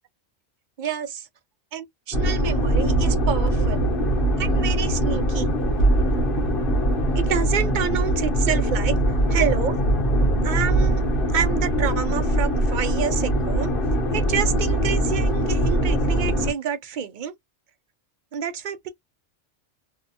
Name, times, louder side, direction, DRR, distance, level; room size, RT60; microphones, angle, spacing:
voice 1, 0.8-1.3 1.7-3.8 4.4-5.5 7.2-9.0 9.3-9.8 10.4-11.0 11.3-13.7 14.1-17.3 18.3-18.9, right 8 dB, 60° right, 0.5 m, -28 dB
sound 1, 2.1-16.5, right 1 dB, 55° left, 1.0 m, -22 dB
2.6 x 2.1 x 2.6 m
omnidirectional pair, 1.2 m